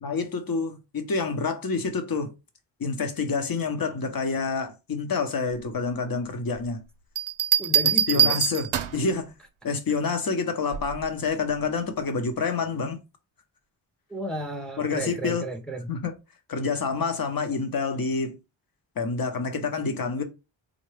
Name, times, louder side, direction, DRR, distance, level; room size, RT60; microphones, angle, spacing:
voice 1, 0.0-2.3 2.8-6.8 8.1-9.3 9.6-13.0 14.8-15.4 15.9-16.1 16.5-18.3 19.0-20.2, left 4 dB, 45° left, 0.8 m, -28 dB
sound 1, 7.2-9.1 10.7-11.1, right 9 dB, 80° right, 0.5 m, -23 dB
voice 2, 7.6-8.4 14.1-15.9, right 1 dB, ahead, 0.5 m, -33 dB
3.8 x 2.1 x 3.2 m
cardioid pair, 80°, 47 cm